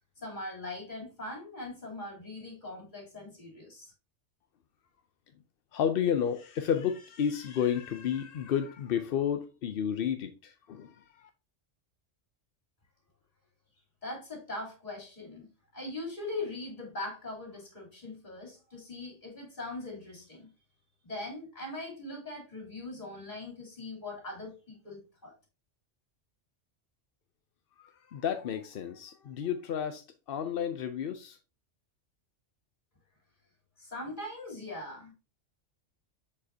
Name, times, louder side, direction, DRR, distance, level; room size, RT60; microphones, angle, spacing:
voice 1, 0.2-3.9 14.0-15.5 15.7-20.5 21.0-25.3 33.8-35.1, left 2 dB, 40° left, 3.4 m, -41 dB
voice 2, 5.7-11.3 27.8-31.4, left 8 dB, 60° left, 0.7 m, -31 dB
7.4 x 6.4 x 2.7 m
omnidirectional pair, 1.3 m